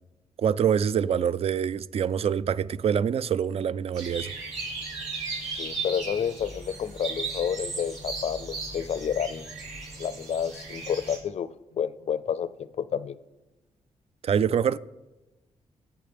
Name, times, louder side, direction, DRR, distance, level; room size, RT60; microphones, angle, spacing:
voice 1, 0.4-4.3 14.2-14.8, right 8 dB, 55° right, 0.4 m, -25 dB
sound 1, 3.9-11.2, right 3 dB, 80° right, 4.6 m, -36 dB
voice 2, 5.6-9.5 10.0-11.5 11.7-13.2, left 8 dB, 60° left, 0.5 m, -30 dB
20.5 x 8.5 x 3.5 m
cardioid pair, 100°, 12 cm